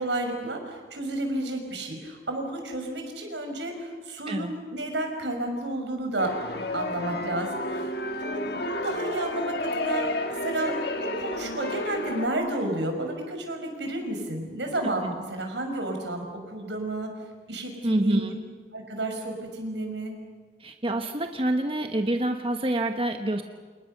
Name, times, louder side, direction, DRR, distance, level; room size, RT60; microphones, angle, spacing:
voice 1, 0.0-7.9 8.2-17.1 17.5-18.3 18.7-20.2, right 1 dB, 80° right, 4 dB, 5.9 m, -31 dB
sound 1, 6.2-12.3, left 1 dB, 60° left, 1.9 m, -31 dB
voice 2, 17.8-18.4 20.6-23.4, right 1 dB, 30° right, 5 dB, 1.2 m, -27 dB
29.5 x 28.5 x 6.7 m, 1.5 s
head